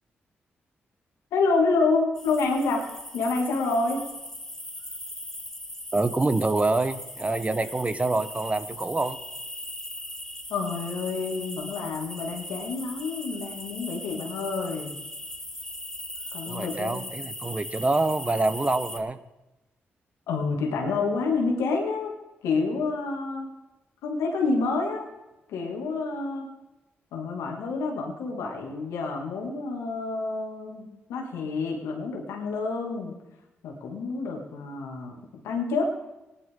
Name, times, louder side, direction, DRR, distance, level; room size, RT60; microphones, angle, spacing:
voice 1, 1.3-2.9 3.1-4.0 10.5-14.9 16.3-17.0 20.3-22.1 22.4-23.5 24.0-25.1 25.5-26.5 27.1-33.1 33.6-35.2 35.4-35.9, left 3 dB, 90° left, 1 dB, 2.3 m, -28 dB
sound 1, 2.1-19.0, left 1 dB, 10° left, 1.8 m, -39 dB
voice 2, 5.9-9.2 16.5-19.2, right 2 dB, 30° right, 13 dB, 0.9 m, -26 dB
17.5 x 11.0 x 3.7 m, 1.0 s
supercardioid pair, 50°, 5 cm